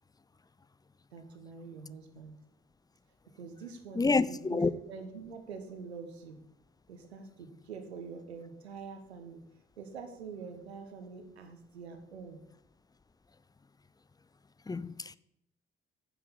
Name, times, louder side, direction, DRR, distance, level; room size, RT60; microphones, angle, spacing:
voice 1, 1.1-2.3 3.3-6.4 6.9-9.4 9.8-12.4, right 5 dB, 80° right, 1.2 m, -45 dB
voice 2, 4.0-4.7 14.7-15.2, left 3 dB, 10° left, 0.5 m, -28 dB
9.3 x 6.2 x 7.0 m
figure-of-eight pair, 40°, 32 cm